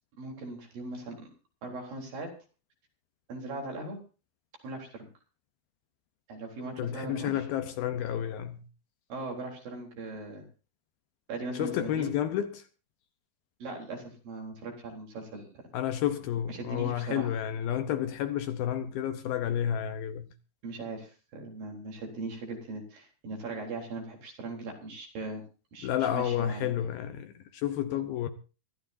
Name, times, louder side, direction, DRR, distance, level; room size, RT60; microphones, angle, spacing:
voice 1, 0.2-1.3 1.6-2.3 3.3-4.0 4.6-5.1 6.3-7.4 9.1-10.5 11.3-12.1 13.6-15.6 16.5-17.3 20.6-25.4 25.7-26.7, right 2 dB, 55° right, 5.3 m, -39 dB
voice 2, 6.8-8.6 11.5-12.6 15.7-20.3 25.8-28.3, left 10 dB, 75° left, 2.5 m, -31 dB
25.0 x 14.5 x 2.7 m
omnidirectional pair, 4.8 m